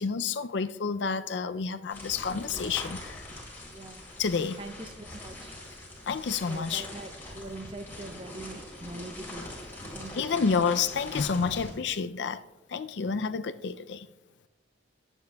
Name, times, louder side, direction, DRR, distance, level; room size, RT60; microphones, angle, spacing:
voice 1, 0.0-3.2 4.2-4.6 6.1-6.9 10.1-12.4 12.7-14.1, left 5 dB, 70° left, 0.5 m, -29 dB
sound 1, 1.9-11.7, left 1 dB, 10° left, 4.1 m, -43 dB
voice 2, 3.7-4.0 4.6-5.6 6.4-9.5 9.9-10.5, right 2 dB, 30° right, 0.8 m, -43 dB
22.5 x 9.0 x 2.3 m
head